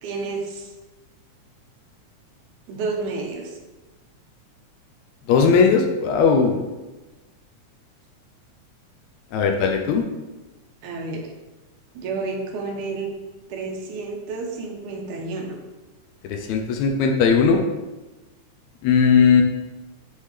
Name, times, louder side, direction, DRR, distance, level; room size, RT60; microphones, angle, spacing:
voice 1, 0.0-0.7 2.7-3.6 10.8-11.3 11.9-13.1 13.5-15.6, right 3 dB, 85° right, 1 dB, 2.3 m, -30 dB
voice 2, 5.3-6.6 9.3-10.0 16.2-17.6 18.8-19.4, left 5 dB, 80° left, 3 dB, 1.8 m, -18 dB
9.5 x 3.6 x 3.3 m, 1.1 s
omnidirectional pair, 3.4 m